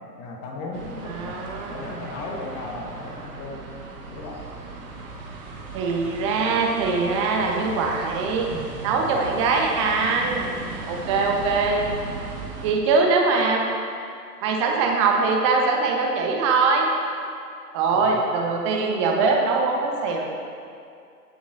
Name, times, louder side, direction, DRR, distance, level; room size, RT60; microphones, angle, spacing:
voice 1, 0.2-3.6 4.1-4.4 8.5-9.2 10.8-11.2 17.9-18.2, left 2 dB, 15° left, -1 dB, 0.8 m, -37 dB
sound 1, 0.7-12.7, right 3 dB, 35° right, 1.5 m, -37 dB
voice 2, 1.1-2.0 5.7-8.5 8.8-10.5 10.9-11.8 12.6-13.6 14.4-16.9 17.7-20.3, right 4 dB, 20° right, 1 dB, 0.9 m, -22 dB
19.5 x 7.0 x 2.5 m, 2.4 s
figure-of-eight pair, 125°, 48 cm